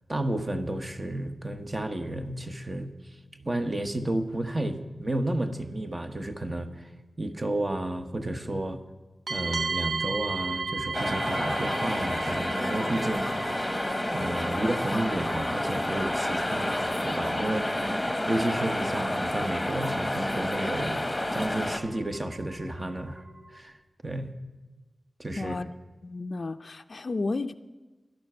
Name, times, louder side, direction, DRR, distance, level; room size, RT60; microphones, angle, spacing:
voice 1, 0.1-2.9 3.4-6.9 7.2-8.8 9.3-13.3 14.1-16.8 17.0-23.2 23.5-23.7 24.0-24.3 25.2-25.6, right 1 dB, 30° right, 7 dB, 1.0 m, -32 dB
sound 1, 9.3-23.6, right 3 dB, 90° right, 1.1 m, -37 dB
sound 2, 10.9-21.8, left 1 dB, 10° left, 1.1 m, -29 dB
voice 2, 25.4-25.7 26.0-27.5, left 3 dB, 50° left, 8 dB, 0.4 m, -32 dB
12.5 x 11.0 x 6.6 m, 1.3 s
wide cardioid pair, 95°, 0 cm